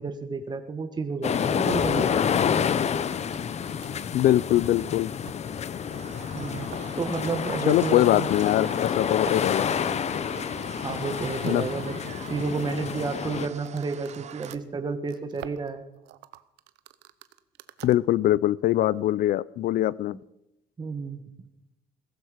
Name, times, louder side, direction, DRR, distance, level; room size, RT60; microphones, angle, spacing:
voice 1, 0.0-2.1 6.3-6.7 7.0-8.3 10.8-12.0 12.3-15.8 20.8-21.2, right 4 dB, 25° right, 8 dB, 1.4 m, -31 dB
sound 1, 1.2-13.5, left 7 dB, 40° left, 0.8 m, -28 dB
sound 2, 2.9-4.1 4.6-4.7 5.2-5.6 5.9-6.0 6.2-6.3 6.6-8.4 9.2-11.6 12.0-12.6 13.5-18.0, right 13 dB, 85° right, 0.8 m, -48 dB
voice 2, 4.1-5.1 7.7-9.7 11.4-11.6 17.8-20.2, left 13 dB, 60° left, 22 dB, 0.4 m, -22 dB
sound 3, 5.9-14.6, right 8 dB, 40° right, 0.9 m, -44 dB
16.5 x 15.5 x 5.0 m, 0.88 s
cardioid pair, 110°, 17 cm